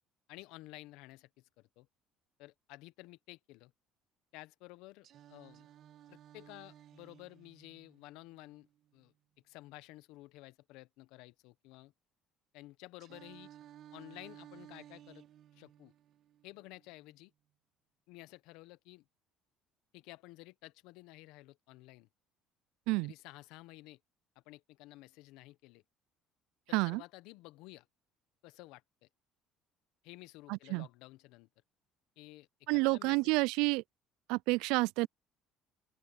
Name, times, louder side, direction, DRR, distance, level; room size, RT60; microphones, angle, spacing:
voice 1, 0.3-1.9 2.4-3.7 4.3-5.7 6.1-8.7 8.9-9.1 9.4-11.9 12.5-13.5 13.9-15.2 15.5-15.9 16.4-17.3 18.1-19.0 19.9-22.1 23.0-24.0 24.3-25.8 26.7-27.9 28.4-29.1 30.0-31.5 32.2-33.2, left 20 dB, 75° left, 1.1 m, -53 dB
Singing, 5.0-9.0 13.0-17.0, right 11 dB, 60° right, 1.9 m, -57 dB
voice 2, 30.5-30.9 32.7-33.8 34.3-35.1, right 25 dB, 80° right, 0.3 m, -29 dB
open air
supercardioid pair, 80°, 0 cm